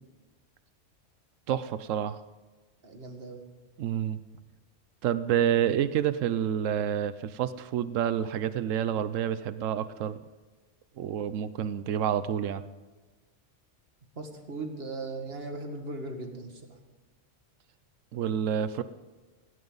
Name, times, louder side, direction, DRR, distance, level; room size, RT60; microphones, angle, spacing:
voice 1, 1.5-2.2 3.8-4.2 5.0-10.2 11.0-12.6 18.1-18.8, right 9 dB, 85° right, 13 dB, 1.0 m, -28 dB
voice 2, 2.8-3.4 14.2-16.8, right 2 dB, 50° right, 4 dB, 2.1 m, -38 dB
17.5 x 17.5 x 4.0 m, 1.3 s
omnidirectional pair, 1.3 m